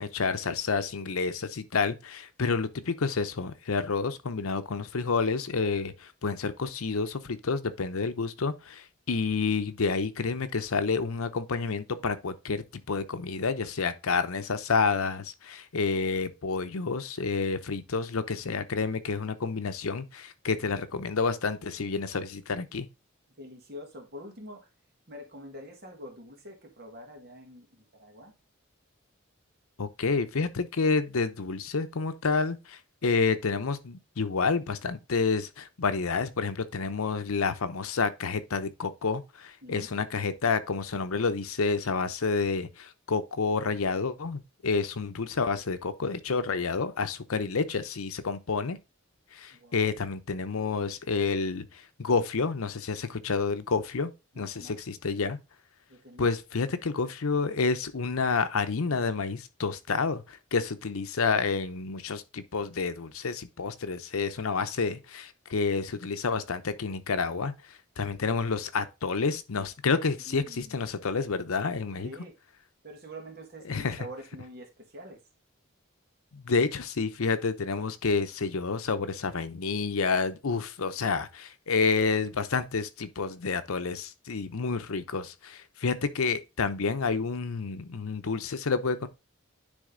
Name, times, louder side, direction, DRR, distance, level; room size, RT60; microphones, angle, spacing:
voice 1, 0.0-5.9 6.2-22.9 29.8-48.8 49.3-51.6 52.0-55.4 56.2-67.5 68.0-72.1 73.7-74.0 76.3-89.1, left 4 dB, 85° left, 0.7 m, -29 dB
voice 2, 23.4-24.7 25.1-28.3 39.6-40.0 49.5-49.9 54.3-54.8 55.9-56.3 70.2-70.8 72.0-72.3 72.8-75.2, equal, 45° right, 1.8 m, -45 dB
9.9 x 3.5 x 3.7 m
head